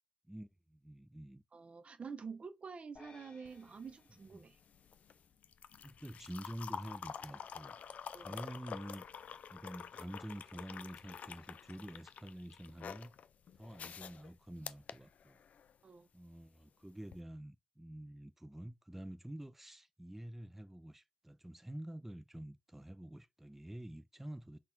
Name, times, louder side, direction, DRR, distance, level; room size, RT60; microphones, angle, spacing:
voice 1, 0.3-1.4 4.3-4.4 5.8-7.8 8.2-9.1 9.5-13.1 13.5-15.4 16.1-24.6, right 1 dB, 10° right, 0.4 m, -48 dB
voice 2, 1.5-4.6 8.1-8.4 15.8-16.1, right 5 dB, 55° right, 0.6 m, -48 dB
sound 1, 2.9-5.4, left 4 dB, 45° left, 1.0 m, -62 dB
sound 2, 3.4-15.8 17.0-17.2, left 7 dB, 70° left, 0.3 m, -48 dB
4.1 x 2.3 x 4.4 m
supercardioid pair, 50°, 3 cm